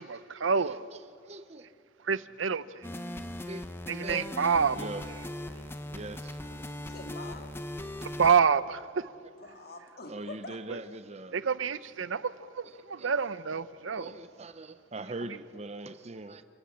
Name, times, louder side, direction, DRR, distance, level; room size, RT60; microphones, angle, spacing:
voice 1, 0.0-0.8 2.1-2.9 3.9-4.9 8.0-8.8 11.3-14.1, right 6 dB, 80° right, 0.7 m, -28 dB
voice 2, 0.6-1.7 2.8-2.9 3.5-3.7 4.0-4.3 4.7-5.1 5.9-6.4 10.1-11.4 12.6-13.1 13.9-16.4, right 2 dB, 35° right, 0.7 m, -42 dB
sound 1, 2.8-8.3, left 1 dB, 10° left, 0.9 m, -39 dB
voice 3, 6.5-7.5 9.4-10.6 11.6-11.7 12.6-12.7, left 2 dB, 50° left, 2.3 m, -46 dB
29.5 x 14.5 x 8.6 m
head